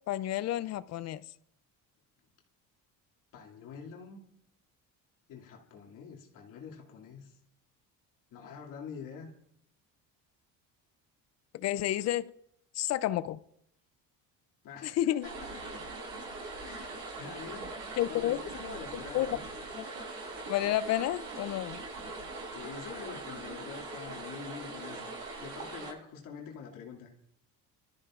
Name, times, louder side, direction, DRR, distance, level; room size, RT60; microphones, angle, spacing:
voice 1, 0.1-1.2 11.5-12.3 12.7-13.4 14.8-15.3 18.0-18.4 19.1-19.3 19.8-19.9 20.5-21.8, left 13 dB, 50° left, 0.4 m, -30 dB
voice 2, 3.3-4.2 5.3-7.4 8.3-9.3 14.6-15.8 16.6-17.8 18.1-19.4 22.5-25.1 25.4-27.1, left 6 dB, 65° left, 2.4 m, -45 dB
sound 1, 15.2-25.9, right 3 dB, 65° right, 7.5 m, -42 dB
28.0 x 13.5 x 2.5 m
cardioid pair, 155°, 35 cm